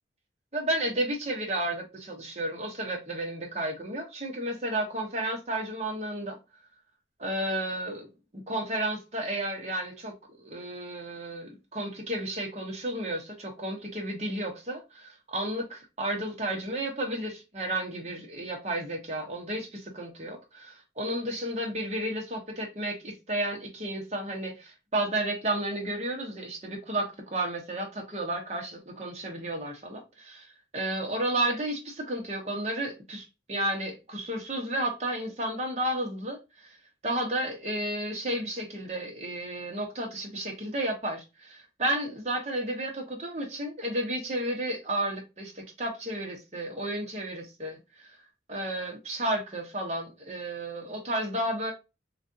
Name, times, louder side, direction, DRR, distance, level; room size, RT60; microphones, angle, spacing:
voice 1, 0.5-6.4 7.2-36.8 37.0-48.2 48.5-51.7, right 1 dB, 35° right, 0.9 m, -32 dB
3.4 x 2.5 x 2.7 m
head